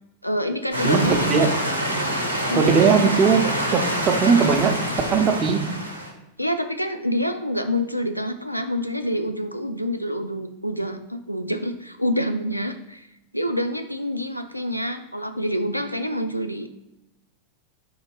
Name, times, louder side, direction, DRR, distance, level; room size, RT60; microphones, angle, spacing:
voice 1, 0.2-1.5 2.5-3.1 6.4-13.1 13.3-16.7, equal, 90° left, 7 dB, 0.4 m, -27 dB
sound 1, 0.7-6.1, equal, 85° right, 0.8 m, -26 dB
voice 2, 0.8-1.5 2.5-4.8 5.1-5.7, right 5 dB, 30° right, 5 dB, 0.6 m, -19 dB
3.9 x 2.8 x 4.5 m, 0.93 s
figure-of-eight pair, 90°, 0 cm